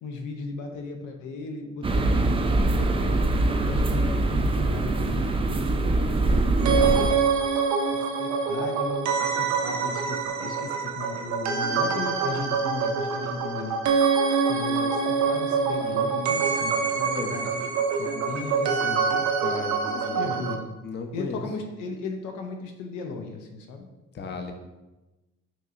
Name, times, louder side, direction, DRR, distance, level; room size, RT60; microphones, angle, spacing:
voice 1, 0.0-5.3 5.8-7.1 7.9-13.7 14.4-17.6 18.0-19.3 19.9-20.7 21.1-23.8, left 4 dB, 85° left, 4 dB, 0.6 m, -36 dB
sound 1, 1.8-7.1, right 2 dB, 20° right, 0.3 m, -23 dB
sound 2, 6.6-20.6, right 5 dB, 70° right, 0.6 m, -25 dB
voice 2, 17.0-17.3 19.4-20.2 20.8-21.4 24.1-24.5, left 4 dB, 35° left, 4 dB, 0.6 m, -35 dB
5.9 x 2.9 x 2.4 m, 1.1 s
cardioid pair, 90°, 30 cm